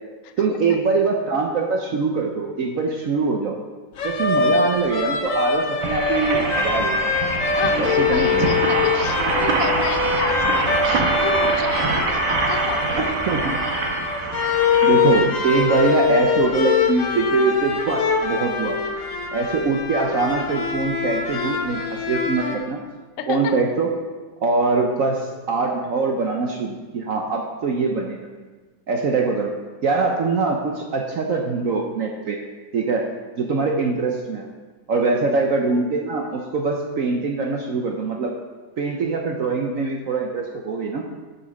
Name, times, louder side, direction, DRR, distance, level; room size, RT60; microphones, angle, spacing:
voice 1, 0.4-3.6 4.0-7.1 7.8-8.6 13.0-13.6 14.8-18.8 19.3-22.8 23.3-23.9 24.4-28.3 28.9-29.5 29.8-32.4 32.7-33.1 33.4-34.5 34.9-38.3 38.8-41.0, right 4 dB, 60° right, 1 dB, 0.9 m, -23 dB
sound 1, 4.0-22.5, left 5 dB, 50° left, 1.2 m, -23 dB
sound 2, 5.8-16.9 17.5-17.6 17.8-17.9, right 3 dB, 80° right, 1.9 m, -25 dB
voice 2, 7.6-13.1 23.2-23.6 35.0-35.2, left 7 dB, 70° left, 7 dB, 0.7 m, -31 dB
6.9 x 5.7 x 6.3 m, 1.4 s
omnidirectional pair, 2.1 m